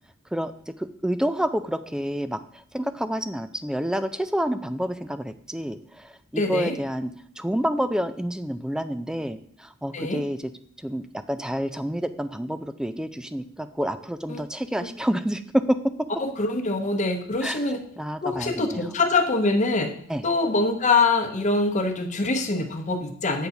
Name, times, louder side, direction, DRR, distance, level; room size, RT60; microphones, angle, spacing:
voice 1, 0.8-10.5 10.8-15.9 17.4-17.6 18.0-18.9 20.1-20.3, equal, 5° right, 11 dB, 0.3 m, -28 dB
voice 2, 6.4-6.8 9.9-10.2 14.3-14.4 16.2-17.8 18.2-19.9 20.2-23.5, left 3 dB, 35° left, 5 dB, 0.9 m, -24 dB
8.4 x 4.0 x 5.8 m, 0.63 s
head